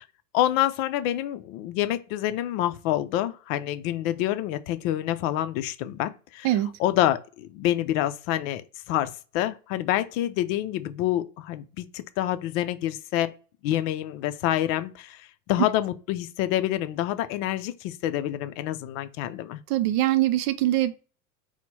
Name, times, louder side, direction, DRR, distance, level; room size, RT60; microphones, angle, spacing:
voice 1, 0.3-6.5 6.8-13.3 13.6-19.6, left 13 dB, 60° left, 0.6 m, -27 dB
voice 2, 19.7-21.0, right 14 dB, 50° right, 0.6 m, -23 dB
4.3 x 2.1 x 4.1 m
hypercardioid pair, 100°, 46 cm